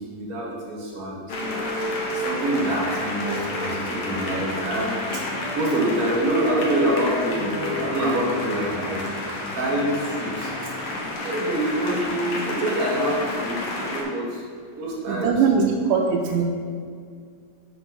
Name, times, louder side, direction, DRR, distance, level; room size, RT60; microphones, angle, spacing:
voice 1, 0.0-1.6 2.1-10.5 11.2-14.4 14.7-15.4, right 1 dB, 50° right, -5 dB, 2.3 m, -26 dB
sound 1, 1.3-14.0, left 1 dB, 90° left, 1.1 m, -30 dB
voice 2, 15.1-16.4, right 6 dB, 85° right, 1 dB, 2.2 m, -21 dB
7.1 x 3.9 x 6.0 m, 2.2 s
omnidirectional pair, 4.0 m